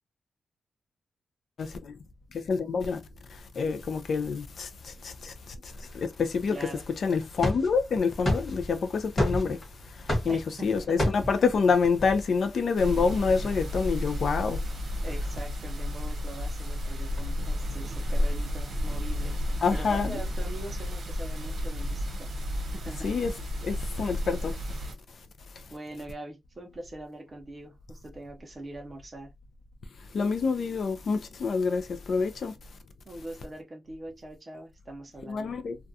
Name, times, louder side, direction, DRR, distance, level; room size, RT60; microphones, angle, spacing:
voice 1, 1.6-1.9 2.3-3.0 3.3-14.6 19.6-20.2 23.0-23.3 23.6-24.8 25.6-25.7 30.1-32.6 35.3-35.8, left 5 dB, 50° left, 0.3 m, -27 dB
sound 1, 5.7-14.0 16.4-17.2, left 1 dB, 25° left, 1.3 m, -34 dB
voice 2, 6.5-6.8 10.3-11.1 15.0-22.3 22.7-23.1 25.7-29.3 33.1-35.6, right 1 dB, 25° right, 0.6 m, -42 dB
sound 2, 12.8-24.9, left 1 dB, 60° right, 0.9 m, -32 dB
2.3 x 2.2 x 2.6 m
wide cardioid pair, 180°, 0 cm